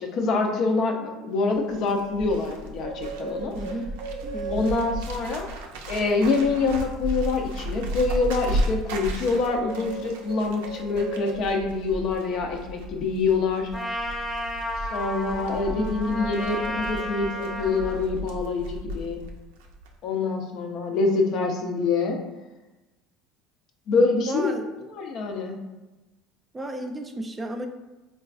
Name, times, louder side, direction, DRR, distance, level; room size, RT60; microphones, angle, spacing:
voice 1, 0.0-3.5 4.5-5.5 5.9-13.7 14.9-19.2 20.0-22.2 23.9-24.5 24.9-25.6, left 3 dB, 60° left, 2 dB, 0.5 m, -25 dB
Bird, 1.5-19.3 19.6-19.9, right 1 dB, 85° right, 0.4 m, -34 dB
voice 2, 3.5-3.9 4.2-4.7 15.7-15.8 24.3-24.7 26.5-27.7, right 1 dB, 20° right, 3 dB, 0.4 m, -33 dB
Trumpet, 13.7-18.1, left 1 dB, 20° left, 0.7 m, -32 dB
3.8 x 2.3 x 2.4 m, 1.1 s
supercardioid pair, 90°, 0 cm